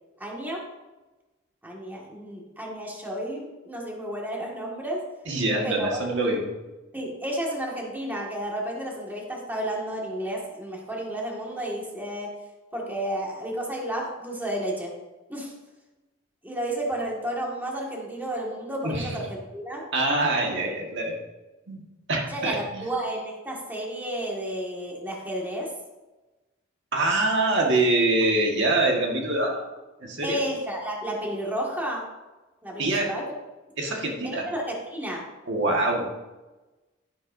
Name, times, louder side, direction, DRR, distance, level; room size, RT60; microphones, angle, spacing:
voice 1, 0.2-0.6 1.6-5.0 5.6-6.2 6.9-12.3 12.7-14.9 15.3-15.5 16.4-19.3 19.5-19.9 22.3-25.7 30.2-32.1 32.6-33.3 34.2-35.2, right 1 dB, 10° right, -3 dB, 1.9 m, -32 dB
voice 2, 5.3-6.5 18.8-19.2 19.9-21.2 21.7-21.8 22.1-22.8 26.9-29.6 30.0-30.4 32.8-33.1 33.8-34.5 35.5-36.1, right 2 dB, 60° right, 0 dB, 1.7 m, -24 dB
11.5 x 11.0 x 2.7 m, 1.1 s
head